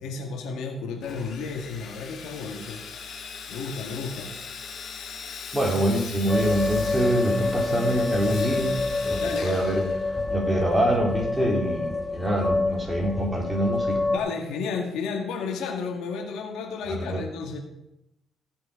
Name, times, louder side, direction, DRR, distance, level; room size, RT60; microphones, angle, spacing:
voice 1, 0.0-2.8 3.5-4.3 9.2-9.5 14.1-17.6, left 5 dB, 85° left, 3 dB, 1.7 m, -32 dB
Sawing, 1.0-10.5, left 6 dB, 65° left, 2.0 m, -40 dB
voice 2, 5.5-8.8 9.0-14.0 16.9-17.2, right 1 dB, 10° right, 0 dB, 3.4 m, -25 dB
sound 1, 6.3-14.2, left 3 dB, 20° left, 1.1 m, -27 dB
15.5 x 6.3 x 5.1 m, 0.88 s
cardioid pair, 90°, 0 cm